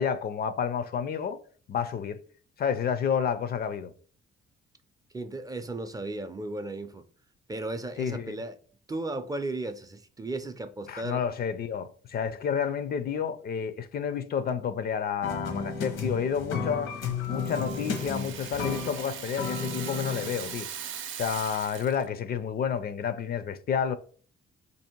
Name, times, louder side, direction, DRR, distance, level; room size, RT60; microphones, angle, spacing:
voice 1, 0.0-1.4 1.7-2.2 2.6-3.9 8.0-8.4 10.9-16.9 17.3-20.7 21.2-24.0, left 7 dB, 50° left, 0.4 m, -30 dB
voice 2, 5.1-7.0 7.5-8.6 8.9-11.2, right 2 dB, 20° right, 0.4 m, -35 dB
sound 1, 15.2-20.8, left 5 dB, 80° left, 0.9 m, -34 dB
Rattle (instrument), 17.0-22.1, right 8 dB, 75° right, 0.6 m, -40 dB
2.9 x 2.7 x 4.4 m
cardioid pair, 90°, 20 cm